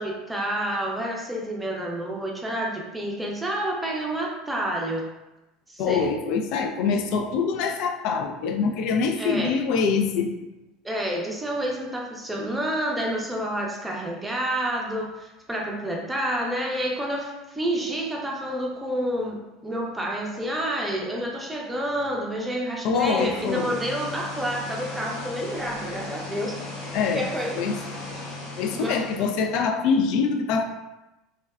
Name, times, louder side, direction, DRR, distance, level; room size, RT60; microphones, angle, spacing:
voice 1, 0.0-5.1 5.7-6.1 9.2-9.6 10.8-26.6 27.1-27.6 28.7-29.0, right 1 dB, 10° right, -1 dB, 0.5 m, -29 dB
voice 2, 5.8-10.3 22.8-23.8 26.9-27.3 27.6-27.8 28.6-30.6, left 5 dB, 60° left, 5 dB, 0.3 m, -24 dB
sound 1, 23.0-29.7, left 2 dB, 85° left, 1.0 m, -37 dB
3.4 x 2.1 x 2.3 m, 1.0 s
supercardioid pair, 125°, 0 cm